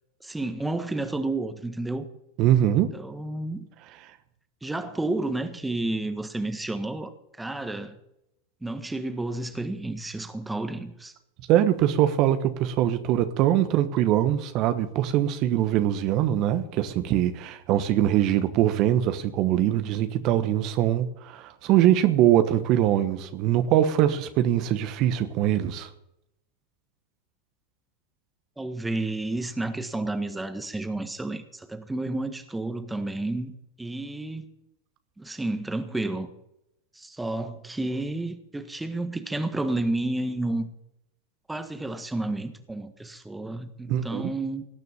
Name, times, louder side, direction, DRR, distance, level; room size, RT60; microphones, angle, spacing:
voice 1, 0.2-2.1 2.9-3.7 4.6-8.0 8.6-11.1 28.6-34.5 35.2-36.3 36.9-40.7 41.5-44.6, right 2 dB, 10° right, 1.5 m, -31 dB
voice 2, 2.4-2.9 11.5-25.9 43.9-44.3, right 12 dB, 45° right, 1.1 m, -22 dB
18.5 x 6.8 x 8.4 m
hypercardioid pair, 90°, 0 cm